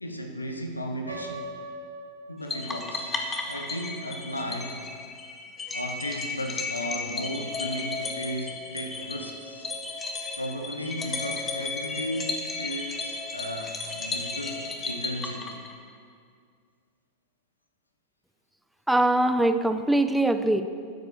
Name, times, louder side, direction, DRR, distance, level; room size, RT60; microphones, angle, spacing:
voice 1, 0.0-1.5 2.3-3.1 3.5-4.8 5.7-9.7 10.4-15.5, equal, 80° left, 4 dB, 1.1 m, -35 dB
Piano, 1.1-3.0, right 2 dB, 85° right, 2.8 m, -40 dB
sound 1, 2.5-15.9, left 3 dB, 20° left, 1.4 m, -34 dB
voice 2, 18.9-20.6, right 1 dB, 5° right, 9 dB, 0.6 m, -22 dB
12.5 x 8.1 x 6.3 m, 2.1 s
figure-of-eight pair, 90°, 0 cm